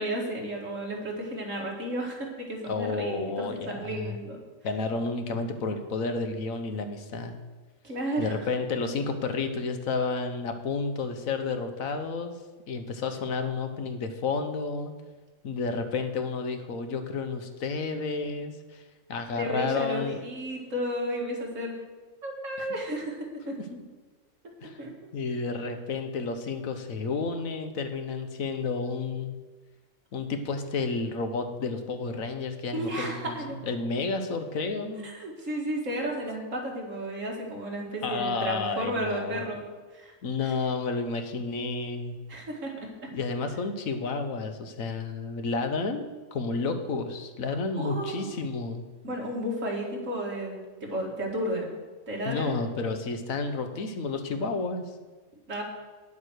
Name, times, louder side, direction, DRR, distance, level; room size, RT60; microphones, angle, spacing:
voice 1, 0.0-4.4 7.8-8.3 19.4-21.7 22.2-23.5 24.8-24.9 32.7-33.6 35.0-39.7 39.9-40.1 40.4-40.5 42.3-42.7 47.8-48.3 49.0-51.7 52.1-52.5 55.5-55.6, right 1 dB, 65° right, -1 dB, 2.5 m, -33 dB
voice 2, 2.7-4.2 4.6-7.3 8.2-12.3 12.7-14.9 15.4-18.8 19.1-20.2 22.6-22.7 23.5-23.8 24.6-24.7 25.1-29.4 30.1-33.4 33.7-35.1 38.0-39.4 40.2-42.2 43.1-48.9 52.2-54.8, left 4 dB, 75° left, 7 dB, 1.4 m, -31 dB
9.7 x 7.4 x 6.3 m, 1.3 s
omnidirectional pair, 1.4 m